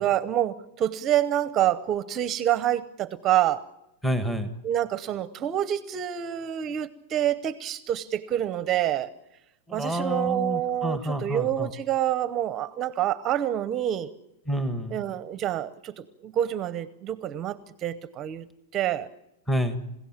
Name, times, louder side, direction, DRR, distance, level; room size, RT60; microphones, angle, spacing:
voice 1, 0.0-3.6 4.6-9.1 9.7-14.1 14.9-18.5 18.7-19.1, right 11 dB, 25° right, 0.8 m, -27 dB
voice 2, 4.0-4.5 9.7-11.7 14.5-15.0 19.5-19.8, equal, 5° left, 1.4 m, -28 dB
28.5 x 16.5 x 7.4 m
supercardioid pair, 155°, 0 cm